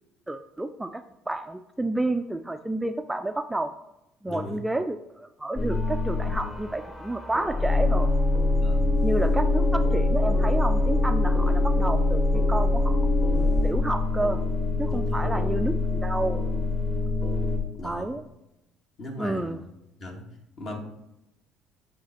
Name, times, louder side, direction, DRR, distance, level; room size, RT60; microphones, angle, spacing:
voice 1, 0.3-3.7 4.2-8.1 9.0-13.0 13.3-14.4 14.8-16.4 17.8-18.2 19.2-19.6, right 2 dB, 10° right, 8 dB, 0.3 m, -30 dB
voice 2, 4.3-4.6 8.5-8.9 14.9-15.3 17.8-18.1 19.0-19.6 20.0-20.8, left 1 dB, 50° left, 1 dB, 1.7 m, -38 dB
sound 1, 5.6-17.6, left 2 dB, 25° left, 1.3 m, -24 dB
7.9 x 2.8 x 4.2 m, 0.89 s
hypercardioid pair, 60°, 0 cm